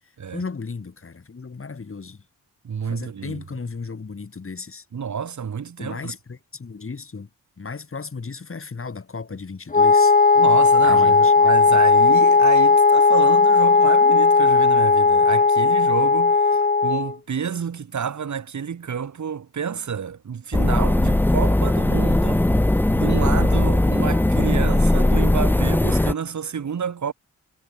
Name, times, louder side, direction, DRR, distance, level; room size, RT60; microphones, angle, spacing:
voice 1, 0.0-2.2 2.8-4.9 5.8-7.3 7.6-10.2 10.8-11.3 11.7-11.8 16.6-16.7, left 4 dB, 40° left, 6.4 m, -35 dB
voice 2, 2.6-3.4 4.9-6.1 10.4-22.5 22.9-27.1, right 7 dB, 60° right, 6.0 m, -29 dB
Wind instrument woodwind instrument, 9.7-17.1, left 4 dB, 25° left, 1.2 m, -16 dB
sound 1, 20.5-26.1, left 1 dB, 5° left, 0.6 m, -19 dB
cardioid pair, 60°, 32 cm